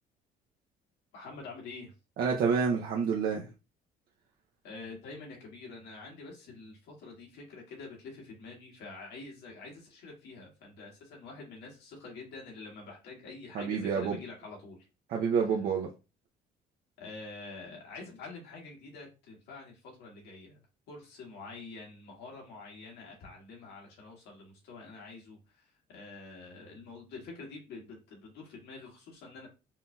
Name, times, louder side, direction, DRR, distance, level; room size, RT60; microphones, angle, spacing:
voice 1, 1.1-1.9 4.6-14.9 15.3-15.5 17.0-20.6 20.9-29.5, left 3 dB, 75° left, -2 dB, 1.8 m, -47 dB
voice 2, 2.2-3.5 13.5-14.2 15.1-15.9, right 6 dB, 60° right, -1 dB, 0.7 m, -28 dB
5.7 x 2.8 x 2.3 m, 0.30 s
cardioid pair, 110°, 17 cm